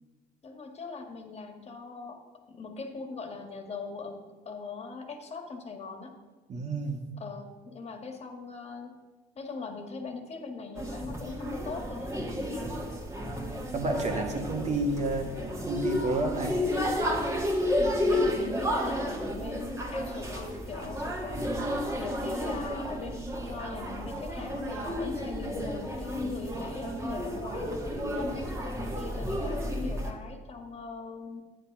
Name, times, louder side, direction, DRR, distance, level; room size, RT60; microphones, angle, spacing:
voice 1, 0.4-2.2 2.5-6.2 7.2-9.0 9.4-12.7 17.8-21.5 22.0-27.7 28.1-31.4, left 4 dB, 40° left, 4 dB, 1.9 m, -40 dB
voice 2, 6.5-7.0 13.7-15.3 15.6-16.6 21.4-21.5, right 2 dB, 40° right, 3 dB, 2.0 m, -30 dB
sound 1, 10.8-30.1, equal, 15° right, 2.2 m, -32 dB
11.0 x 9.6 x 6.1 m, 1.4 s
cardioid pair, 110°, 17 cm